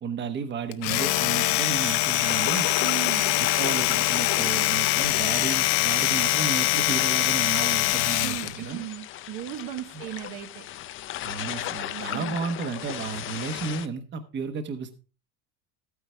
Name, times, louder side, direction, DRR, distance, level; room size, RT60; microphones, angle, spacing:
voice 1, 0.0-2.7 3.3-8.8 11.2-15.0, right 5 dB, 25° right, 9 dB, 1.2 m, -33 dB
Domestic sounds home sounds, 0.7-8.6, left 17 dB, 60° left, 0.8 m, -24 dB
sound 1, 1.1-13.9, left 13 dB, 30° left, 0.4 m, -36 dB
voice 2, 2.8-3.4 7.5-10.7 11.8-12.4, right 14 dB, 45° right, 7 dB, 1.1 m, -37 dB
13.0 x 9.6 x 3.3 m, 0.33 s
cardioid pair, 155°, 44 cm